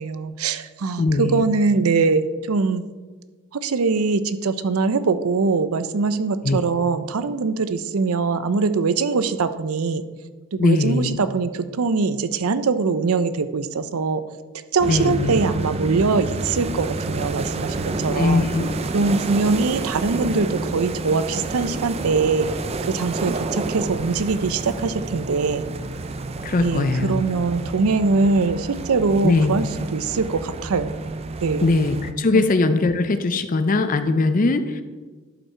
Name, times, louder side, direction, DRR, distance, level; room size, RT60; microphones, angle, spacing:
voice 1, 0.0-2.8 3.5-10.0 10.5-14.2 14.7-18.5 18.9-22.5 22.8-25.6 26.6-29.6 29.9-30.9 31.4-31.7 32.3-32.4, right 4 dB, 80° right, 12 dB, 0.5 m, -22 dB
voice 2, 1.0-1.4 6.4-6.6 10.6-11.2 14.9-15.4 18.1-18.7 26.4-27.2 29.2-29.5 31.6-34.8, left 3 dB, 40° left, 10 dB, 0.5 m, -20 dB
sound 1, 14.8-32.1, right 3 dB, 30° right, 0.4 m, -29 dB
11.0 x 5.5 x 4.4 m, 1.3 s
head